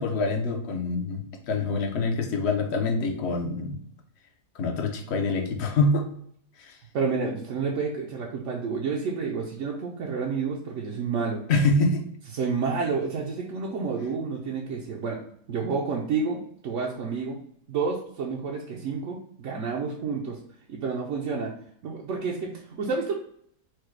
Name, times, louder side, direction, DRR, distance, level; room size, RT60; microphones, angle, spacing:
voice 1, 0.0-3.8 4.5-6.1 6.6-6.8 11.5-12.0, left 3 dB, 55° left, 4 dB, 0.8 m, -25 dB
voice 2, 6.9-11.4 12.3-15.2 15.5-17.4 17.7-20.4 20.7-21.5 21.8-23.1, right 5 dB, 60° right, -2 dB, 0.8 m, -29 dB
4.6 x 2.2 x 4.5 m, 0.66 s
omnidirectional pair, 1.7 m